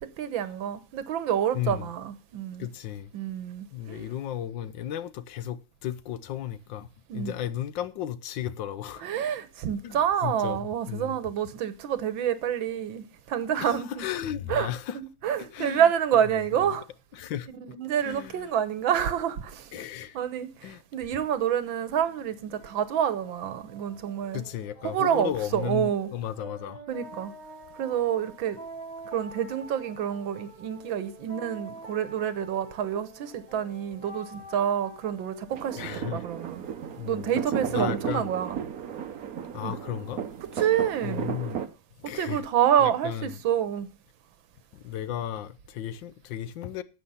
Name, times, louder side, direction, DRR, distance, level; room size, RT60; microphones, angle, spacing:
voice 1, 0.0-2.7 3.1-4.1 7.1-7.3 9.0-14.1 14.5-14.7 15.0-16.9 17.7-19.7 20.1-24.4 24.8-26.1 26.9-27.3 27.8-28.6 29.1-36.6 37.1-38.6 39.6-39.7 40.6-41.3 42.0-43.9, right 9 dB, 85° right, 1.7 m, -28 dB
voice 2, 1.5-1.9 2.6-3.1 3.7-6.9 7.1-9.0 9.8-11.2 13.6-15.0 15.4-15.9 16.6-16.7 17.1-17.5 18.0-18.5 19.7-20.2 20.6-20.8 21.1-21.2 24.3-26.8 35.8-36.2 37.0-37.3 37.7-38.3 39.5-40.2 40.5-40.6 41.0-41.6 42.0-42.4 42.8-43.4 44.7-46.8, left 11 dB, 75° left, 1.4 m, -34 dB
sound 1, 22.0-39.5, right 1 dB, 20° left, 3.0 m, -48 dB
sound 2, 35.5-41.7, right 8 dB, 55° right, 1.2 m, -34 dB
12.5 x 8.2 x 5.5 m
omnidirectional pair, 2.1 m